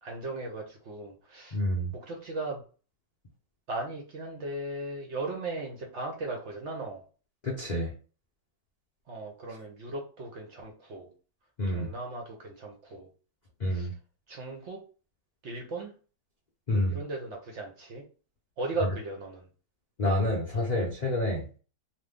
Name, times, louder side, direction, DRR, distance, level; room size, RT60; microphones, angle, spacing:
voice 1, 0.0-1.6 1.9-2.6 3.7-7.0 9.1-11.1 11.7-13.1 13.7-13.9 14.3-14.8 15.4-15.9 16.9-18.0 18.6-19.5, right 2 dB, 65° right, 0 dB, 0.7 m, -37 dB
voice 2, 1.5-1.9 7.4-7.9 11.6-11.9 13.6-13.9 16.7-17.0 20.0-21.5, left 1 dB, 85° left, -3 dB, 0.3 m, -28 dB
3.0 x 2.2 x 3.5 m, 0.38 s
omnidirectional pair, 1.8 m